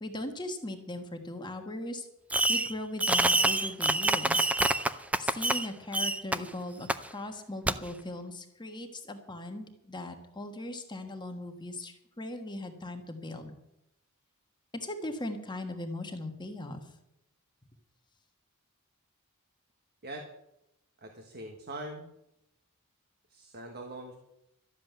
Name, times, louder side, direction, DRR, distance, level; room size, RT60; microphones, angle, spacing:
voice 1, 0.0-2.1 2.5-4.5 5.2-6.9 7.1-13.6 14.7-16.8, left 1 dB, 20° left, 5 dB, 1.4 m, -39 dB
Fireworks, 2.3-2.7 3.0-5.7 5.9-6.4 6.9-7.0 7.7-7.8, right 2 dB, 5° right, 0.5 m, -26 dB
voice 2, 21.0-22.1 23.3-24.2, right 1 dB, 50° right, 4 dB, 1.5 m, -42 dB
13.0 x 7.5 x 9.3 m, 0.84 s
head